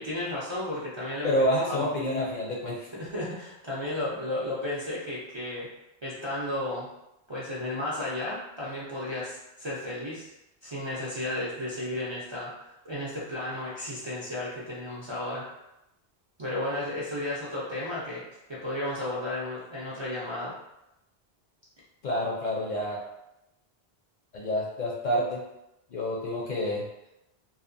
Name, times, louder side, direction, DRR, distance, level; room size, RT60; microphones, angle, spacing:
voice 1, 0.0-1.3 1.7-1.9 2.9-5.7 6.0-6.9 7.3-10.3 10.6-15.4 16.4-18.2 18.5-20.5, left 1 dB, 40° right, -8 dB, 0.4 m, -33 dB
voice 2, 1.2-2.9 22.0-23.0 24.3-25.4 25.9-26.8, equal, 55° left, -4 dB, 0.6 m, -28 dB
2.7 x 2.2 x 2.5 m, 0.90 s
omnidirectional pair, 1.0 m